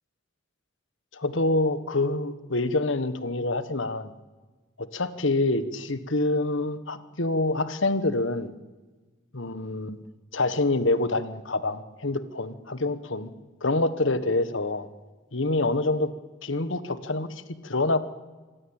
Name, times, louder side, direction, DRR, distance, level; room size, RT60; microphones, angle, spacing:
voice 1, 1.1-4.1 4.8-8.5 9.3-10.0 10.3-13.3 13.6-14.9 15.3-16.1 16.4-18.0, left 2 dB, 70° left, 12 dB, 1.4 m, -26 dB
26.0 x 17.0 x 8.9 m, 1.3 s
head